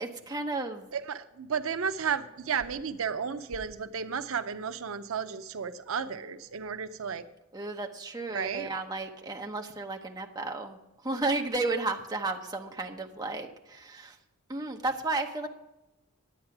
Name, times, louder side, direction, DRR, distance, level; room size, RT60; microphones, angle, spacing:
voice 1, 0.0-0.9 7.5-14.2 14.5-15.5, right 3 dB, 20° right, 3 dB, 0.8 m, -33 dB
voice 2, 0.9-7.3 8.3-8.7, right 6 dB, 75° right, 11 dB, 0.6 m, -33 dB
10.5 x 8.7 x 5.9 m, 0.96 s
head